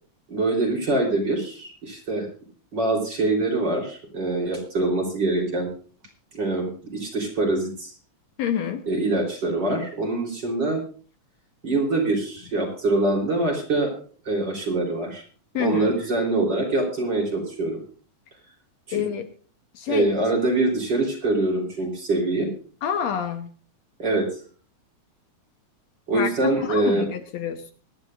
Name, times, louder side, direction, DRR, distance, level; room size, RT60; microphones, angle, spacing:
voice 1, 0.3-2.3 2.7-5.7 6.3-7.9 8.9-10.8 11.6-13.9 14.3-15.2 15.6-17.8 18.9-19.0 19.9-22.5 24.0-24.3 26.1-27.1, right 2 dB, 35° right, 1 dB, 4.2 m, -24 dB
voice 2, 8.4-8.8 15.5-16.0 18.9-19.3 19.7-20.1 22.8-23.5 26.1-27.7, left 9 dB, 70° left, 8 dB, 2.2 m, -27 dB
24.5 x 11.0 x 2.5 m, 0.41 s
omnidirectional pair, 3.4 m